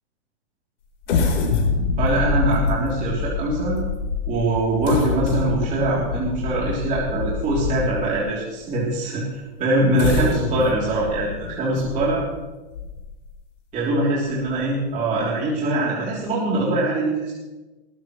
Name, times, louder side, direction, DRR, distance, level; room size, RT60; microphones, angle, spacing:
sound 1, 1.0-8.2 8.8-8.9 9.8-13.3 13.8-13.9 14.3-14.5, left 4 dB, 80° left, 4.2 m, -25 dB
voice 1, 2.0-3.8 4.3-12.2 13.7-17.3, right 2 dB, 20° right, -6 dB, 3.3 m, -23 dB
19.5 x 15.5 x 3.2 m, 1.1 s
hypercardioid pair, 155°, 35 cm